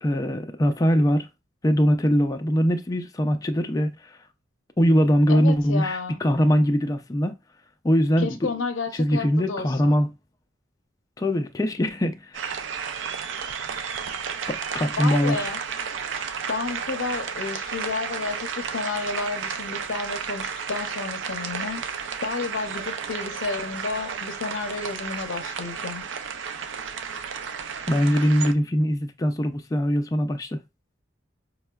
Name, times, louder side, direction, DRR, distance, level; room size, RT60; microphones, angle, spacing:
voice 1, 0.0-1.3 1.6-3.9 4.8-7.4 7.8-8.5 9.0-10.1 11.2-12.4 14.5-15.5 27.9-30.6, equal, 20° left, 0.3 m, -22 dB
voice 2, 5.3-6.2 8.2-9.9 15.0-15.6 16.5-21.8 22.2-26.0, left 4 dB, 75° left, 0.6 m, -31 dB
sound 1, 12.3-28.5, right 6 dB, 65° right, 0.4 m, -32 dB
5.3 x 2.1 x 2.3 m
head